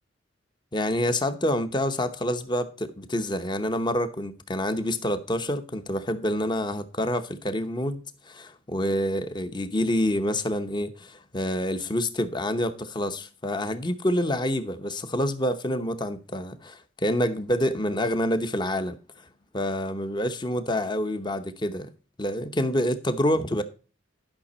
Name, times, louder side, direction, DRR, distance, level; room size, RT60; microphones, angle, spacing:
voice 1, 0.7-8.0 8.3-19.0 19.5-21.9 22.2-23.6, left 1 dB, 25° left, 0.9 m, -27 dB
11.5 x 5.9 x 4.2 m
head